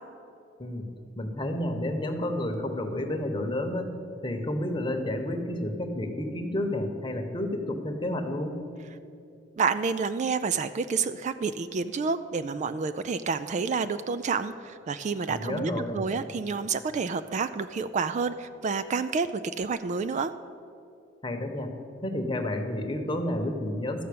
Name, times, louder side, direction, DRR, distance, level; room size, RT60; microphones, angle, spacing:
voice 1, 0.6-0.9 1.2-3.9 4.2-8.6 15.3-16.0 21.2-21.7 22.0-24.0, left 1 dB, 25° left, 4 dB, 1.0 m, -30 dB
voice 2, 9.6-20.3, right 5 dB, 40° right, 12 dB, 0.3 m, -29 dB
13.0 x 5.6 x 8.5 m, 2.6 s
head